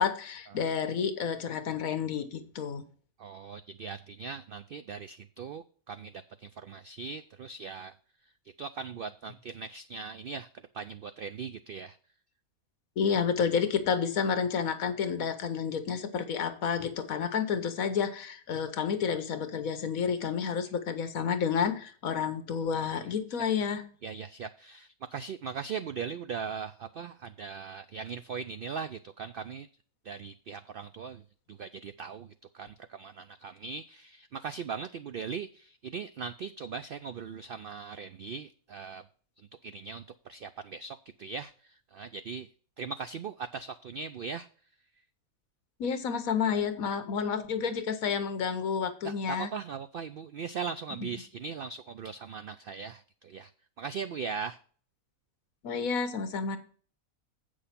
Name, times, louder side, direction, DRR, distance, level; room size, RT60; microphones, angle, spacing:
voice 1, 0.0-2.8 13.0-23.8 45.8-49.5 55.6-56.6, left 6 dB, 75° left, 10 dB, 1.4 m, -30 dB
voice 2, 3.2-8.0 8.2-8.3 8.6-12.0 22.8-23.1 24.0-29.7 30.0-39.1 39.4-42.5 42.8-44.5 46.8-47.0 49.0-53.5 53.8-54.6, right 6 dB, 75° right, 10 dB, 0.5 m, -40 dB
8.0 x 6.3 x 5.7 m, 0.44 s
omnidirectional pair, 1.5 m